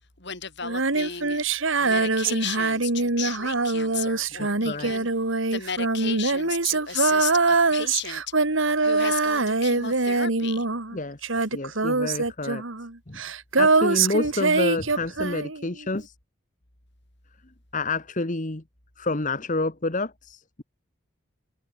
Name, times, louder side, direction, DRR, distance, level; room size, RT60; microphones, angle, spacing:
voice 1, 0.2-1.4 1.8-5.1 5.5-8.2 8.8-10.7, left 8 dB, 55° left, 4.9 m, -34 dB
Female singing, 0.6-11.0 11.2-15.7, right 3 dB, 70° right, 2.0 m, -23 dB
voice 2, 4.4-4.9 10.9-11.2 11.5-12.6 13.1-13.2 13.6-16.1 17.7-18.6 19.0-20.6, left 2 dB, 40° left, 1.4 m, -29 dB
head